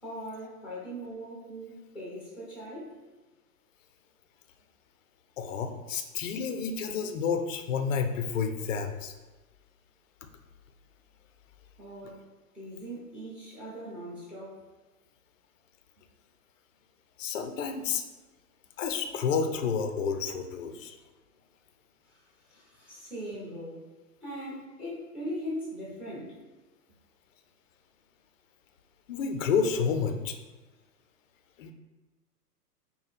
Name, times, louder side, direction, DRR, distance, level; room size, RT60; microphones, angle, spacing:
voice 1, 0.0-3.0 11.8-12.2 12.5-14.6 20.7-20.8 22.0-23.8 24.2-26.3, equal, 5° right, -6 dB, 1.0 m, -40 dB
voice 2, 5.4-9.1 17.2-18.0 18.8-21.0 29.1-30.4 31.6-31.7, left 6 dB, 55° left, 7 dB, 0.6 m, -30 dB
5.4 x 2.2 x 3.3 m, 1.2 s
figure-of-eight pair, 110°, 47 cm